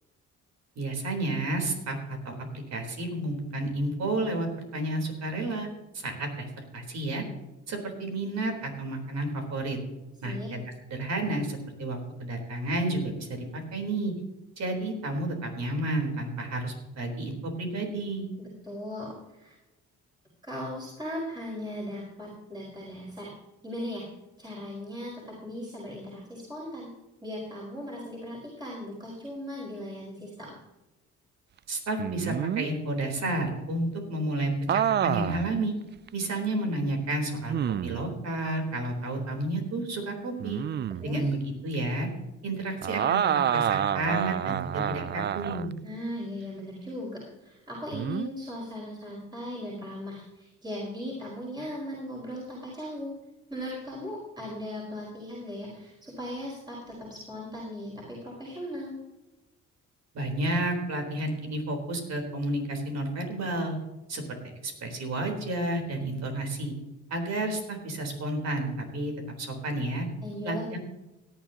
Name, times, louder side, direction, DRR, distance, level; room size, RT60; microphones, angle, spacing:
voice 1, 0.8-2.4 2.7-5.7 5.9-6.5 6.7-7.2 7.7-9.8 10.2-10.6 10.9-14.1 14.6-18.2 31.7-35.7 36.1-37.5 37.8-40.6 41.0-41.4 41.6-42.1 42.4-45.7 60.1-63.8 64.1-64.2 64.6-66.7 67.1-69.1 69.4-70.1 70.4-70.8, right 1 dB, 60° right, 4 dB, 4.0 m, -31 dB
voice 2, 18.4-19.6 20.4-23.3 23.6-24.0 24.4-26.9 27.2-30.5 41.0-41.2 45.8-53.1 53.5-58.9 70.2-70.6, left 1 dB, 15° right, -5 dB, 5.0 m, -38 dB
sound 1, 32.0-32.7 34.7-35.5 36.1-36.2 37.5-38.1 40.4-41.1 42.8-45.7 47.9-48.3, right 9 dB, 35° right, 0.4 m, -28 dB
17.5 x 11.5 x 2.9 m, 1.0 s
cardioid pair, 90°, 30 cm